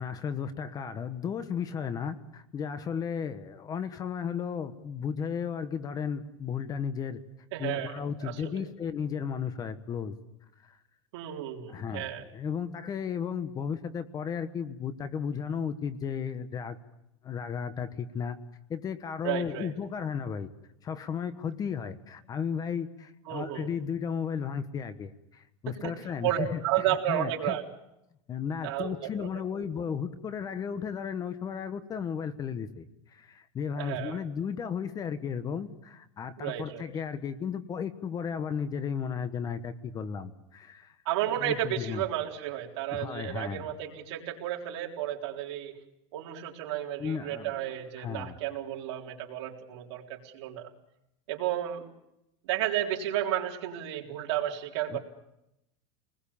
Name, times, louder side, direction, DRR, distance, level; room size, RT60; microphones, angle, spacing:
voice 1, 0.0-7.2 7.6-10.2 10.6-10.8 11.7-16.8 17.2-18.4 18.7-20.5 20.8-27.6 28.3-40.9 41.4-42.0 42.9-43.7 47.0-47.7 48.0-48.4 54.9-55.0, left 7 dB, 25° left, 12 dB, 1.2 m, -34 dB
voice 2, 7.5-8.7 11.1-12.2 19.2-19.7 23.3-23.7 25.8-25.9 26.2-27.7 28.6-29.3 33.8-34.2 36.4-36.9 41.0-45.8 46.1-50.7 51.3-51.9 52.4-55.0, right 12 dB, 70° right, 0 dB, 4.0 m, -32 dB
27.5 x 20.5 x 7.2 m, 0.84 s
supercardioid pair, 150°, 15 cm